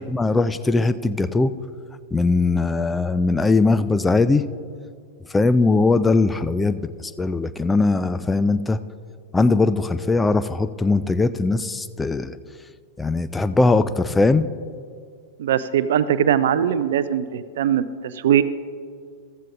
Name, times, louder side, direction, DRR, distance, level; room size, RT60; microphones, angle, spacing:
voice 1, 0.0-1.5 2.1-4.5 5.3-8.8 9.3-12.4 13.0-14.5, left 3 dB, 10° left, 13 dB, 0.3 m, -20 dB
voice 2, 15.4-18.4, right 9 dB, 60° right, 15 dB, 0.4 m, -21 dB
15.0 x 13.0 x 2.5 m, 2.2 s
figure-of-eight pair, 90°, 0 cm